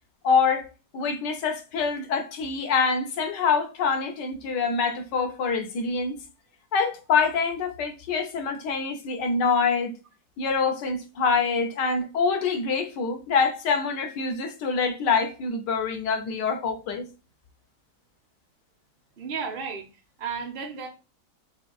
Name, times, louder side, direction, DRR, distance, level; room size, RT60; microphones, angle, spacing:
voice 1, 0.2-0.7 0.9-6.2 6.7-9.9 10.4-17.0, left 5 dB, 85° left, 1.6 m, -25 dB
voice 2, 19.2-19.9 20.2-20.9, right 6 dB, 40° right, 1.0 m, -33 dB
5.3 x 3.1 x 2.3 m
omnidirectional pair, 1.8 m